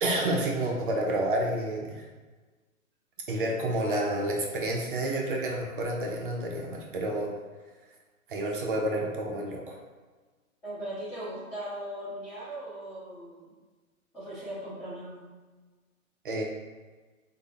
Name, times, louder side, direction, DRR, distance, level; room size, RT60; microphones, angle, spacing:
voice 1, 0.0-2.0 3.3-7.3 8.3-9.8 16.2-16.4, right 1 dB, 40° right, -1 dB, 0.5 m, -29 dB
voice 2, 10.6-13.5 14.1-15.2, right 1 dB, 5° left, -16 dB, 0.8 m, -38 dB
3.6 x 2.1 x 3.3 m, 1.3 s
hypercardioid pair, 150°, 43 cm